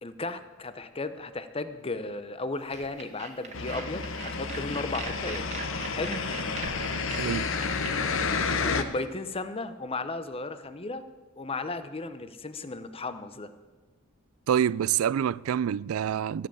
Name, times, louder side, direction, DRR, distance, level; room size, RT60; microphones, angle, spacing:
voice 1, 0.0-5.5 5.9-6.2 8.6-11.0 11.4-13.5, left 3 dB, 25° left, 0.8 m, -35 dB
sound 1, 2.7-7.9, right 4 dB, 35° right, 1.6 m, -40 dB
sound 2, 3.5-8.8, left 4 dB, 65° left, 1.0 m, -30 dB
voice 2, 7.1-7.5 14.5-16.5, right 9 dB, 80° right, 0.3 m, -27 dB
15.0 x 7.7 x 8.8 m
head